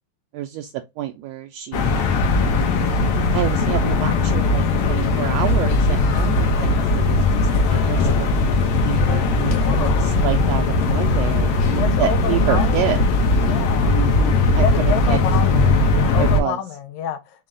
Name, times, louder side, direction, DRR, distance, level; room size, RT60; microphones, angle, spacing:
voice 1, 0.3-2.0 3.3-7.4 7.7-8.3 8.8-13.0 13.9-15.2 16.2-16.6, right 12 dB, 80° right, 1.5 m, -28 dB
sound 1, 1.7-16.4, left 3 dB, 70° left, 1.7 m, -19 dB
voice 2, 9.5-10.2 11.8-13.0 13.4-13.9 14.6-17.2, left 8 dB, 90° left, 2.2 m, -29 dB
5.5 x 2.2 x 3.7 m
omnidirectional pair, 3.3 m